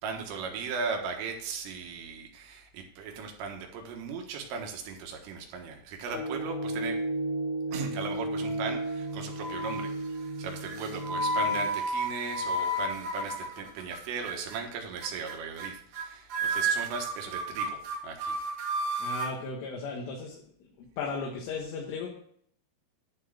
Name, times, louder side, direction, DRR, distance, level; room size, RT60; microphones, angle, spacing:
voice 1, 0.0-7.0 7.7-18.4, right 5 dB, 80° right, 2 dB, 3.9 m, -37 dB
sound 1, 6.1-11.6, right 1 dB, 60° left, 4.4 m, -34 dB
sound 2, 8.4-9.0 9.4-9.9 10.7-14.0 14.3-14.6 15.0-15.3 15.6-15.7 15.9-16.0 16.3-19.3, right 1 dB, 60° right, 3.6 m, -32 dB
voice 2, 19.0-20.4 20.8-22.1, left 4 dB, 75° left, -1 dB, 3.9 m, -36 dB
11.0 x 4.6 x 7.4 m, 0.63 s
omnidirectional pair, 5.8 m